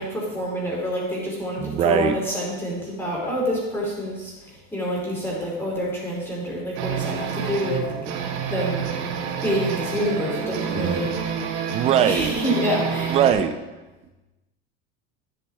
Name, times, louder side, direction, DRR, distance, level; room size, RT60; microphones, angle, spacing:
voice 1, 0.0-7.8 8.5-8.8 9.4-11.2 12.0-13.2, equal, 10° left, -5 dB, 3.1 m, -27 dB
voice 2, 1.6-2.1 10.8-11.1 11.7-12.4 13.1-13.5, right 9 dB, 20° right, 9 dB, 0.3 m, -21 dB
sound 1, 6.8-13.3, right 7 dB, 90° right, 1.8 m, -28 dB
13.0 x 8.1 x 3.5 m, 1.1 s
cardioid pair, 175°, 31 cm